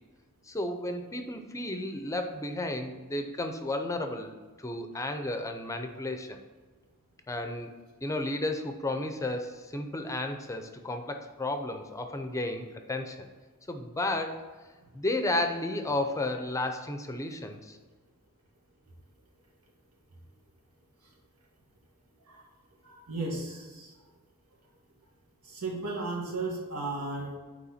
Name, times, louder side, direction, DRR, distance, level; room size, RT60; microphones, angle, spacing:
voice 1, 0.5-6.4 7.3-7.7 8.0-13.3 13.7-14.4 14.9-17.8, left 2 dB, 15° left, 6 dB, 0.6 m, -33 dB
voice 2, 22.8-23.9 25.4-27.4, right 3 dB, 90° right, -2 dB, 2.0 m, -35 dB
8.4 x 4.7 x 4.2 m, 1.4 s
head